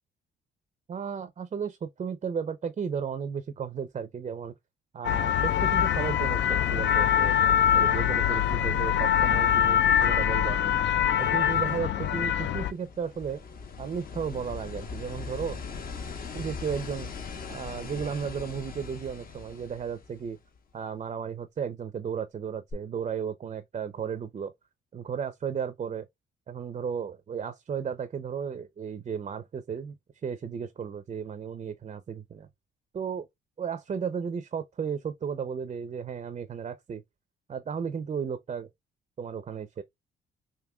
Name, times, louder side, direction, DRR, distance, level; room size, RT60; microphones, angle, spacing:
voice 1, 0.9-4.5 4.9-7.3 7.7-10.6 11.2-13.4 13.8-15.6 16.3-17.1 17.5-20.4 20.7-24.5 24.9-26.1 26.5-30.0 30.2-32.5 32.9-33.3 33.6-37.0 37.5-38.7 39.2-39.8, right 7 dB, 35° right, 0.5 m, -34 dB
sound 1, 5.0-12.7, left 10 dB, 65° left, 0.5 m, -24 dB
sound 2, 12.2-20.6 22.7-22.8, left 5 dB, 45° left, 0.9 m, -40 dB
5.0 x 2.7 x 2.2 m
cardioid pair, 90°, 20 cm